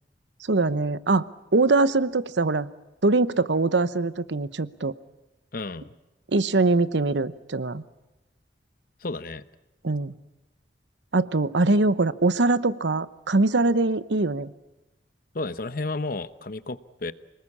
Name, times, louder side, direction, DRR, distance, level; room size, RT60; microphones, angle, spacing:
voice 1, 0.5-1.2 1.5-2.7 3.0-4.9 6.3-7.8 9.8-10.1 11.1-14.5, right 3 dB, 85° right, 15 dB, 0.9 m, -22 dB
voice 2, 5.5-5.9 9.0-9.4 15.3-17.1, left 2 dB, 55° left, 13 dB, 0.9 m, -32 dB
28.0 x 20.0 x 8.6 m, 1.0 s
head